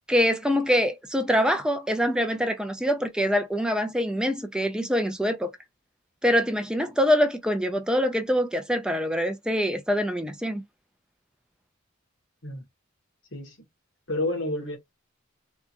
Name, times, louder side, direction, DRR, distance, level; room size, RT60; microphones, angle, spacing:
voice 1, 0.1-5.5 6.2-10.6, equal, 5° right, 0.5 m, -24 dB
voice 2, 14.1-14.8, left 2 dB, 70° left, 1.6 m, -29 dB
3.5 x 2.5 x 2.8 m
head